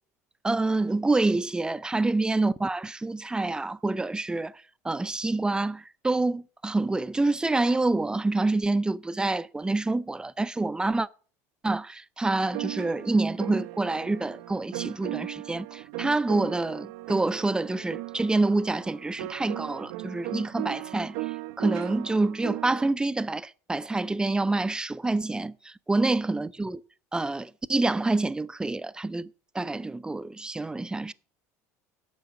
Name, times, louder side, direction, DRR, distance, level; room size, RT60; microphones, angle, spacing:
voice 1, 0.4-4.5 4.8-11.1 11.6-26.8 27.1-31.1, right 2 dB, 10° right, 0.4 m, -27 dB
sound 1, 12.4-22.9, right 19 dB, 70° right, 0.4 m, -37 dB
9.3 x 7.0 x 6.7 m
hypercardioid pair, 85°, 8 cm